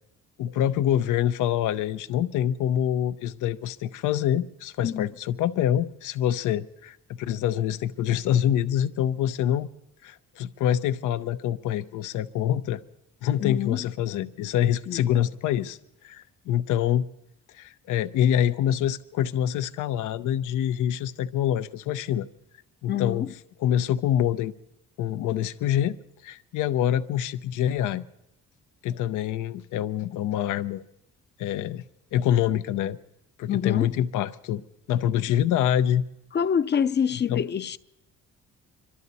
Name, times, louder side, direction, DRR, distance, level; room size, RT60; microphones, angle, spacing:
voice 1, 0.4-9.7 10.0-12.8 13.2-17.0 17.5-22.3 22.8-23.3 23.6-24.5 25.0-26.0 26.2-28.0 28.8-30.8 31.4-31.8 32.1-33.0 33.4-34.6 34.9-36.0 37.3-37.4, left 10 dB, 85° left, 0.7 m, -25 dB
voice 2, 13.4-13.8 14.9-15.0 22.9-23.3 33.5-33.9 36.3-37.8, left 8 dB, 35° left, 0.6 m, -26 dB
25.5 x 12.5 x 4.1 m
cardioid pair, 90°, 30 cm